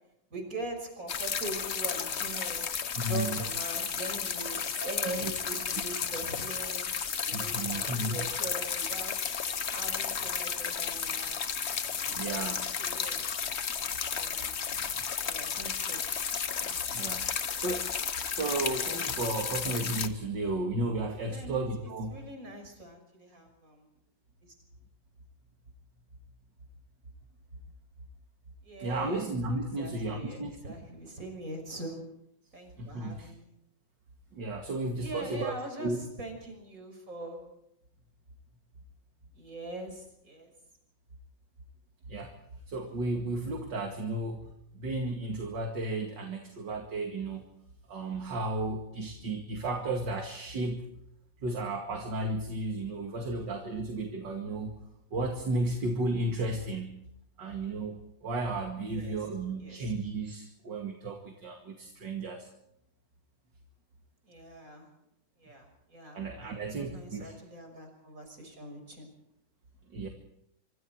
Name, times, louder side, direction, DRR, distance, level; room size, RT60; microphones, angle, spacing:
voice 1, 0.3-2.7 3.0-6.9 7.2-11.4 11.9-13.3 14.1-15.0 15.2-16.0 16.6-17.1 18.2-18.3 21.2-21.6 22.1-23.8 24.4-24.5 28.6-32.0 32.5-33.5 35.0-37.4 39.3-40.5 58.9-59.2 59.6-59.9 64.2-64.9 65.4-69.1, right 2 dB, 40° right, 4 dB, 6.4 m, -42 dB
sound 1, 1.1-20.1, left 7 dB, 45° left, 1.0 m, -33 dB
voice 2, 3.0-3.4 4.7-5.3 7.3-8.2 12.1-12.7 16.9-17.3 17.6-17.9 18.3-22.2 28.8-30.5 32.8-33.3 34.3-35.5 35.8-36.0 42.1-42.3 42.7-44.5 44.7-47.5 47.9-50.8 51.4-54.7 55.1-57.0 57.4-62.5 66.1-67.3 69.9-70.1, right 2 dB, 65° right, 3 dB, 2.8 m, -33 dB
25.5 x 25.5 x 4.6 m, 0.78 s
omnidirectional pair, 2.2 m